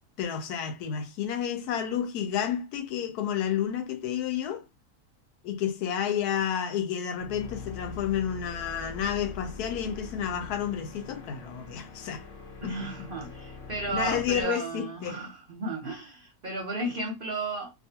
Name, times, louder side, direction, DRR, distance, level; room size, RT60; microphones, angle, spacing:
voice 1, 0.2-4.6 5.4-12.3 12.6-12.9 13.9-15.2, left 9 dB, 80° left, 1.2 m, -30 dB
sound 1, 7.1-14.4, left 5 dB, 45° left, 0.8 m, -43 dB
voice 2, 12.6-17.7, right 2 dB, 50° right, 0.7 m, -34 dB
2.5 x 2.4 x 2.7 m
omnidirectional pair, 1.6 m